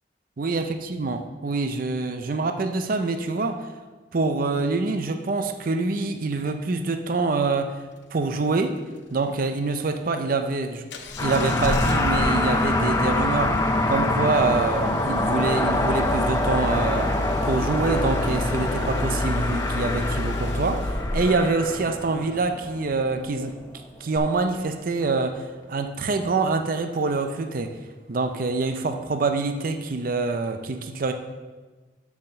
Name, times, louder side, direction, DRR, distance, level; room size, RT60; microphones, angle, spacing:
voice 1, 0.4-3.6 4.1-7.8 8.1-8.8 9.1-10.8 11.2-17.2 17.4-23.6 24.0-27.8 28.1-31.1, right 3 dB, 50° right, 7 dB, 0.5 m, -25 dB
Engine starting, 10.9-21.5 24.1-24.2, left 2 dB, 75° left, 0.8 m, -31 dB
sound 1, 11.2-23.8, left 1 dB, 15° left, 0.6 m, -25 dB
6.6 x 5.8 x 6.6 m, 1.3 s
head